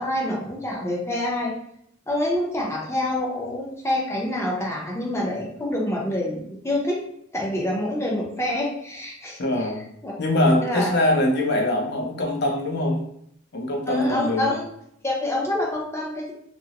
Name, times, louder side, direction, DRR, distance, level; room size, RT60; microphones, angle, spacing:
voice 1, 0.0-1.5 2.1-7.0 7.3-9.4 10.0-10.1 10.6-10.9 13.9-14.6 15.0-16.3, left 1 dB, 15° left, -2 dB, 0.6 m, -26 dB
voice 2, 9.4-9.8 10.2-13.0 13.5-14.5, left 1 dB, 55° left, 1 dB, 0.6 m, -22 dB
2.9 x 2.6 x 2.8 m, 0.70 s
head